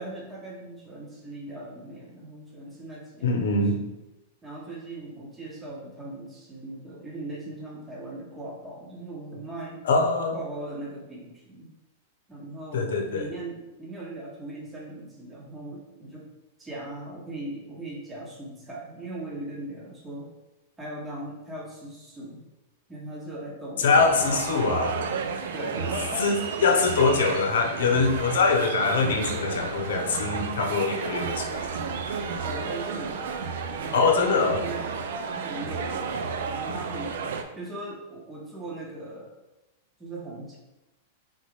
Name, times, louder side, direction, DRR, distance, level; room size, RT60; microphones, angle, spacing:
voice 1, 0.0-3.6 4.4-9.8 10.3-11.7 12.3-16.3 16.6-20.3 20.8-22.4 22.9-24.7 25.5-26.7 32.4-34.9 35.3-37.2 37.5-39.3 40.0-40.6, right 2 dB, 15° right, -4 dB, 1.1 m, -39 dB
voice 2, 3.2-3.8 9.9-10.4 12.7-13.3 23.8-24.9 26.2-26.3 26.6-32.0 33.9-34.6, left 4 dB, 75° left, 4 dB, 0.7 m, -23 dB
sound 1, 23.9-37.4, right 5 dB, 70° right, 0.4 m, -32 dB
3.9 x 3.7 x 3.2 m, 1.0 s
hypercardioid pair, 110°, 0 cm